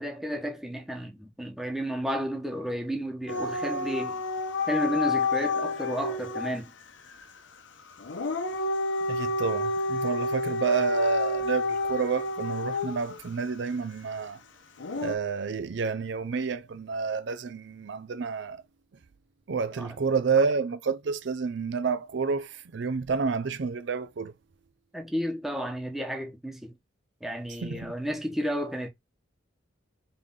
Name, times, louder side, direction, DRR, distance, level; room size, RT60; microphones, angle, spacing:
voice 1, 0.0-4.2 4.7-6.7 19.8-19.9 24.9-26.7 27.2-28.9, equal, ahead, 1.0 m, -32 dB
Dog / Siren, 3.3-6.6 8.0-13.2 14.8-15.1, left 2 dB, 70° left, 0.8 m, -29 dB
voice 2, 9.1-14.4 15.0-18.6 19.5-24.3 27.6-27.9, right 5 dB, 65° right, 0.5 m, -29 dB
3.9 x 3.3 x 3.6 m
head